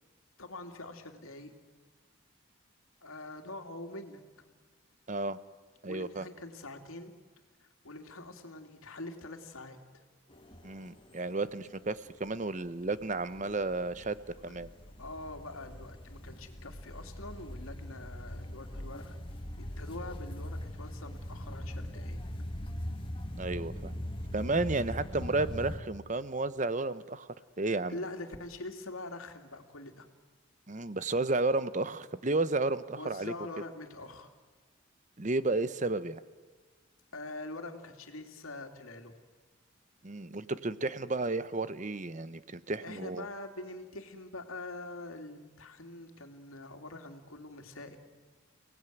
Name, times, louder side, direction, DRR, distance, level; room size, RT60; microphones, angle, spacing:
voice 1, 0.4-1.5 3.0-4.2 5.8-7.1 7.6-10.0 13.4-13.5 14.3-14.5 15.0-19.2 19.6-22.2 27.9-30.1 33.0-34.3 37.1-39.2 42.8-48.0, left 2 dB, 90° left, 5 dB, 2.7 m, -44 dB
voice 2, 5.1-5.4 5.8-6.3 10.6-14.2 14.4-14.7 23.4-23.9 24.3-27.3 27.6-28.0 30.7-33.3 35.2-36.2 40.0-43.2, right 2 dB, 35° right, 15 dB, 0.8 m, -32 dB
sound 1, 10.3-25.8, equal, 25° left, 2.3 m, -41 dB
30.0 x 18.5 x 9.2 m, 1.4 s
head